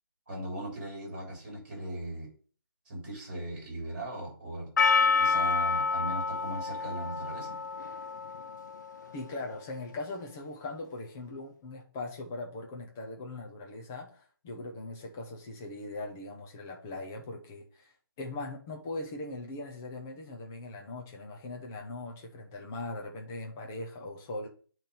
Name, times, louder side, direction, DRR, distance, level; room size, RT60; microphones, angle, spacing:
voice 1, 0.3-2.3 2.8-4.7 5.2-7.6, right 1 dB, 25° right, 3.2 m, -38 dB
Percussion, 4.8-9.3, left 4 dB, 50° left, 0.6 m, -29 dB
voice 2, 9.1-24.5, left 2 dB, 5° left, 0.3 m, -40 dB
8.2 x 3.0 x 5.2 m
hypercardioid pair, 170°, 12 cm